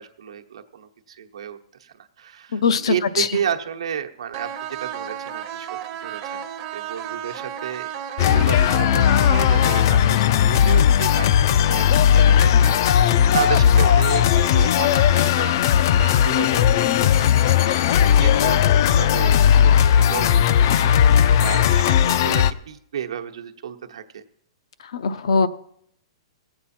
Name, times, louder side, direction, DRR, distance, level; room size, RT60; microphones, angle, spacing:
voice 1, 0.0-4.5 4.8-5.7 6.0-6.4 6.7-7.9 8.2-15.6 15.9-17.3 18.0-19.3 19.6-24.2, right 8 dB, 85° right, 4 dB, 0.9 m, -32 dB
voice 2, 2.5-3.3 24.9-25.5, left 5 dB, 75° left, 13 dB, 0.6 m, -21 dB
sound 1, 4.3-10.3, right 9 dB, 25° right, 0.6 m, -33 dB
sound 2, 8.2-22.5, left 9 dB, 40° left, 0.3 m, -17 dB
17.0 x 8.0 x 4.3 m, 0.72 s
hypercardioid pair, 170°, 3 cm